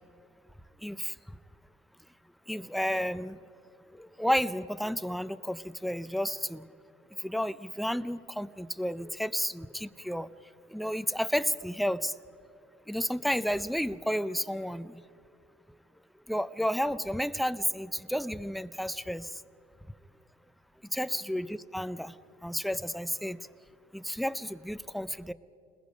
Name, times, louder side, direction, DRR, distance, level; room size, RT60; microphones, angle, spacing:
voice 1, 0.8-1.1 2.5-3.4 4.0-6.7 7.2-10.3 10.7-12.1 12.9-14.9 16.3-19.3 20.9-22.1 22.4-23.4 23.9-25.3, equal, ahead, 13 dB, 0.6 m, -31 dB
29.5 x 20.5 x 5.2 m, 2.6 s
cardioid pair, 110°, 17 cm